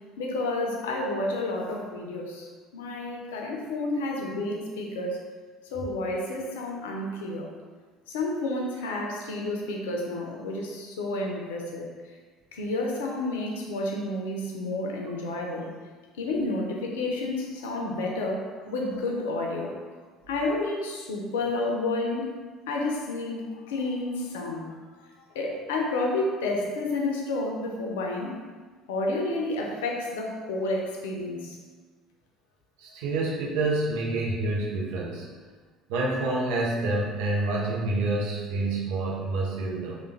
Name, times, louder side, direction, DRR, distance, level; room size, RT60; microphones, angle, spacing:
voice 1, 0.2-5.2 5.7-7.5 8.1-11.9 12.5-15.7 16.2-19.8 20.3-22.3 22.7-24.7 25.3-28.4 28.9-31.6, left 2 dB, 75° left, 0 dB, 0.5 m, -30 dB
voice 2, 32.8-35.3 35.9-40.0, right 2 dB, 70° right, -3 dB, 0.6 m, -28 dB
3.3 x 2.2 x 3.2 m, 1.5 s
figure-of-eight pair, 60°, 0 cm